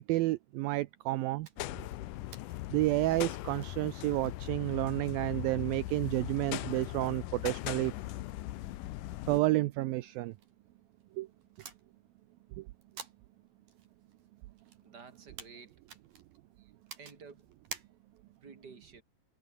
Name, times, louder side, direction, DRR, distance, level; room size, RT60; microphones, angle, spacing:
voice 1, 0.0-1.5 2.7-7.9 9.3-10.3 11.2-11.3 12.6-12.7, right 18 dB, 80° right, 2.2 m, -30 dB
sound 1, 1.4-18.4, right 7 dB, 55° right, 5.1 m, -55 dB
sound 2, 1.6-9.4, left 16 dB, 80° left, 1.9 m, -39 dB
voice 2, 14.8-15.8 17.0-17.5 18.4-19.0, right 5 dB, 25° right, 3.1 m, -52 dB
omnidirectional pair, 4.8 m